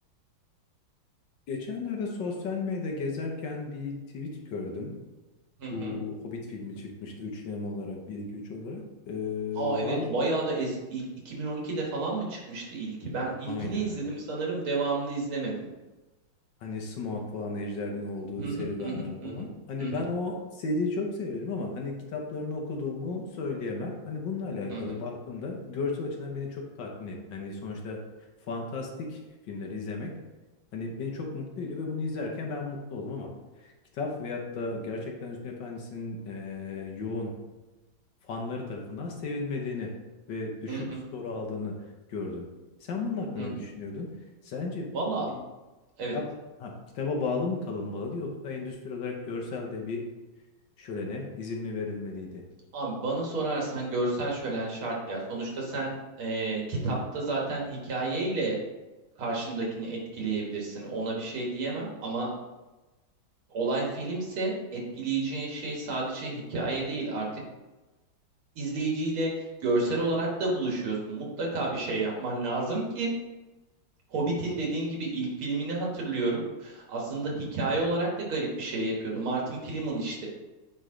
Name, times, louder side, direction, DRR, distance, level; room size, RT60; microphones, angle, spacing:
voice 1, 1.5-5.0 5.7-10.1 13.5-14.0 16.6-28.0 28.4-29.2 29.5-30.2 30.7-33.3 33.6-33.7 33.9-37.3 38.2-39.9 40.3-41.8 42.1-42.5 42.8-44.1 44.4-44.9 46.1-46.2 46.6-50.0 50.8-52.4, left 3 dB, 65° left, 0 dB, 1.5 m, -34 dB
voice 2, 5.6-6.0 9.6-15.7 18.4-19.5 19.8-20.1 24.7-25.0 40.7-41.0 43.4-43.5 44.9-45.3 46.0-46.2 52.7-55.9 56.2-58.6 59.2-62.3 63.5-67.3 68.6-73.1 74.1-80.3, right 2 dB, 85° right, -2 dB, 2.4 m, -31 dB
8.9 x 3.2 x 3.8 m, 1.1 s
omnidirectional pair, 2.2 m